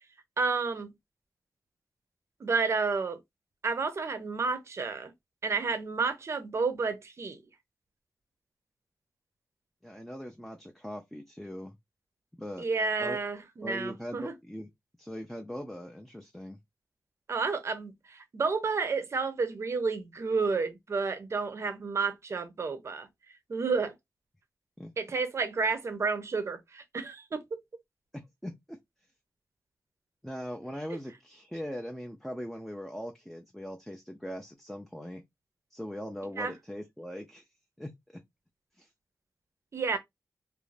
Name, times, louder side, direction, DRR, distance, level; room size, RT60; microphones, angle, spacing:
voice 1, 0.4-0.9 2.4-3.2 3.6-5.1 5.4-7.4 12.6-14.3 17.3-23.1 23.5-23.9 25.0-27.6 30.9-31.0 36.4-36.5 39.7-40.0, right 4 dB, 45° right, 0.5 m, -31 dB
voice 2, 9.8-11.8 12.4-12.7 13.0-13.2 13.6-14.7 15.0-16.6 24.8-24.9 28.1-28.8 30.2-35.2 35.7-37.5 37.8-38.2 38.8-38.9, equal, 5° left, 0.4 m, -40 dB
2.4 x 2.0 x 3.1 m
wide cardioid pair, 125°, 6 cm